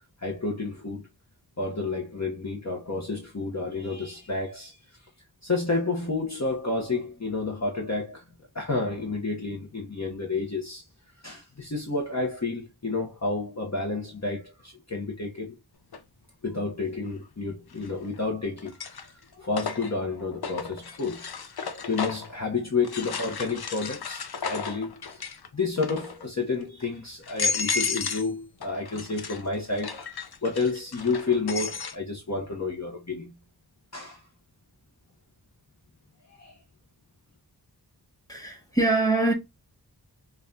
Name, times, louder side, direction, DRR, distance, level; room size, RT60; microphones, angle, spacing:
voice 1, 0.2-1.1 1.6-4.8 5.4-8.3 8.5-10.8 11.2-15.6 16.4-33.4 33.9-34.2 36.3-36.6, left 3 dB, 40° left, 0.9 m, -30 dB
sound 1, 15.9-16.0 17.7-18.2 18.6-22.3 22.8-25.5 25.8-26.3 26.8-26.9 27.2-28.3 28.6-32.0, left 5 dB, 65° left, 0.6 m, -33 dB
voice 2, 38.3-39.3, right 2 dB, 10° left, 1.6 m, -23 dB
5.5 x 2.3 x 2.7 m
wide cardioid pair, 50°, 41 cm